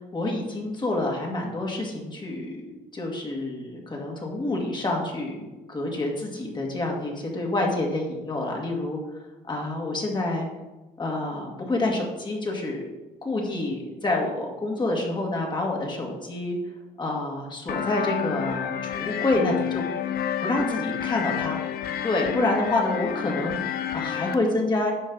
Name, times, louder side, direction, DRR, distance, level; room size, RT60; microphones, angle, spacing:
voice 1, 0.1-10.5 11.0-12.8 13.2-16.6 17.0-19.8 20.4-21.6 22.0-24.9, left 2 dB, 25° left, -1 dB, 2.0 m, -28 dB
sound 1, 17.7-24.3, left 9 dB, 65° left, 0.8 m, -30 dB
10.5 x 6.3 x 4.0 m, 1.1 s
cardioid pair, 110°, 17 cm